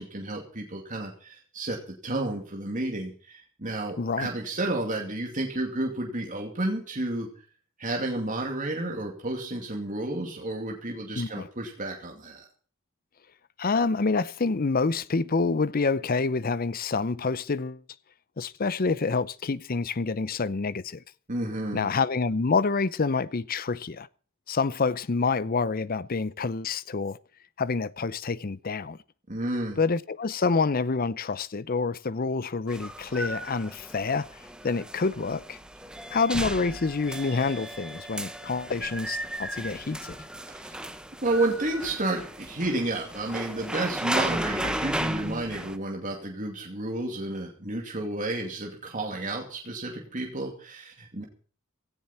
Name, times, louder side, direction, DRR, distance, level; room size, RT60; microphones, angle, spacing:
voice 1, 0.0-1.8 2.0-7.3 7.8-12.4 21.3-21.9 29.3-29.8 40.5-40.9 41.2-51.2, right 2 dB, 35° right, 2.6 m, -31 dB
voice 2, 4.0-4.3 11.1-11.5 13.6-17.8 18.4-21.0 21.7-24.1 24.5-27.2 27.6-29.0 29.8-35.6 36.1-40.2, left 4 dB, 40° left, 0.6 m, -27 dB
sound 1, 32.7-45.8, right 1 dB, 5° right, 0.9 m, -35 dB
17.0 x 14.0 x 4.4 m
head